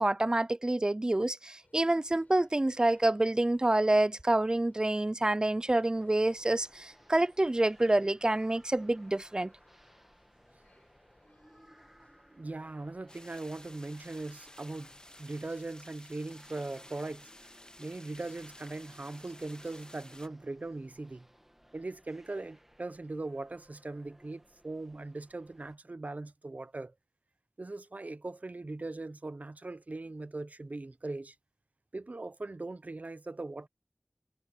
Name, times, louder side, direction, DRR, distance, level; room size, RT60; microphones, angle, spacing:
voice 1, 0.0-9.5, right 1 dB, 30° right, 0.3 m, -27 dB
sound 1, 1.6-15.6, left 2 dB, 70° left, 4.0 m, -67 dB
sound 2, 5.9-25.8, equal, 10° right, 2.1 m, -62 dB
voice 2, 12.3-14.9 15.2-17.3 17.8-21.3 21.7-26.9 27.6-31.4 31.9-33.7, right 2 dB, 60° right, 0.8 m, -40 dB
sound 3, 13.1-20.3, left 1 dB, 30° left, 2.5 m, -54 dB
wide cardioid pair, 45°, 3 cm